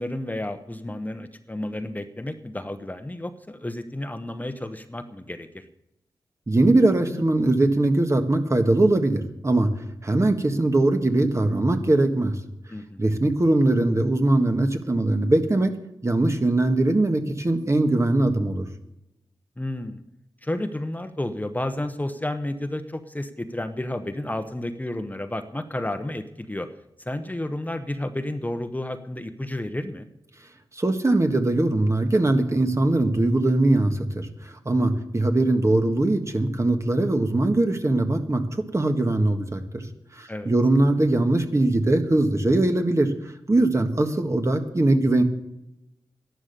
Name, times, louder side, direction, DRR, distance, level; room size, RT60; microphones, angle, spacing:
voice 1, 0.0-5.6 12.7-13.1 19.6-20.0 20.4-26.7 27.0-30.1 34.8-34.9 40.3-40.5, left 1 dB, 20° left, 9 dB, 1.1 m, -31 dB
voice 2, 6.5-9.7 10.0-12.3 13.0-15.7 16.0-18.6 30.7-38.4 38.7-39.8 40.1-43.1 43.5-45.2, right 2 dB, 35° right, 6 dB, 1.7 m, -21 dB
11.5 x 11.0 x 6.9 m, 0.85 s
cardioid pair, 55°, 9 cm